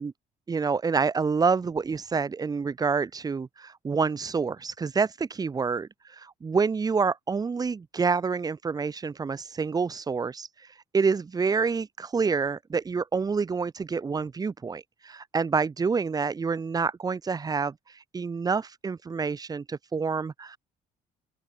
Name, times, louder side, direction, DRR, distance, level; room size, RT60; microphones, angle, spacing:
voice 1, 0.5-20.6, right 5 dB, 20° right, 0.7 m, -28 dB
open air
cardioid pair, 110°, 17 cm